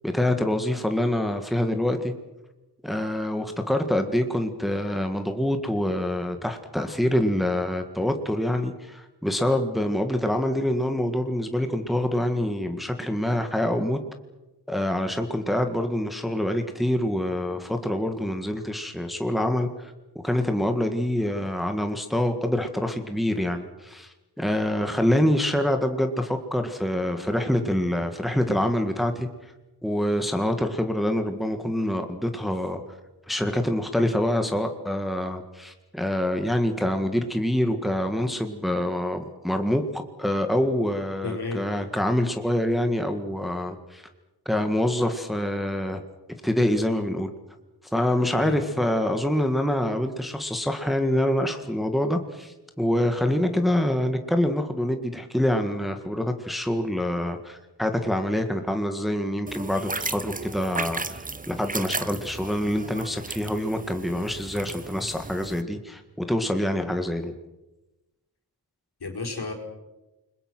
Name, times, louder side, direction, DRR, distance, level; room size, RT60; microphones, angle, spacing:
voice 1, 0.0-2.1 2.8-14.0 14.7-19.9 20.2-29.3 29.8-32.8 33.3-44.0 44.5-46.0 46.4-47.3 47.9-61.2 61.5-67.3, left 1 dB, ahead, 6 dB, 1.8 m, -26 dB
voice 2, 41.2-41.9 48.3-48.6 69.0-69.5, left 3 dB, 65° left, 2 dB, 4.6 m, -32 dB
sound 1, 59.5-65.6, right 3 dB, 20° right, 0.9 m, -35 dB
29.0 x 21.5 x 6.2 m, 1.0 s
wide cardioid pair, 95°, 41 cm